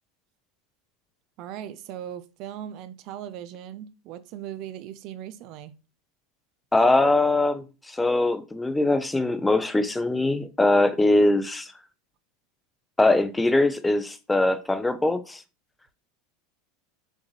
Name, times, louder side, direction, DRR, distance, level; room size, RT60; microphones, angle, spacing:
voice 1, 1.4-5.8, right 10 dB, 55° right, 0.4 m, -38 dB
voice 2, 6.7-11.7 13.0-15.4, left 2 dB, 10° left, 0.5 m, -22 dB
6.1 x 2.4 x 3.2 m
supercardioid pair, 110°, 0 cm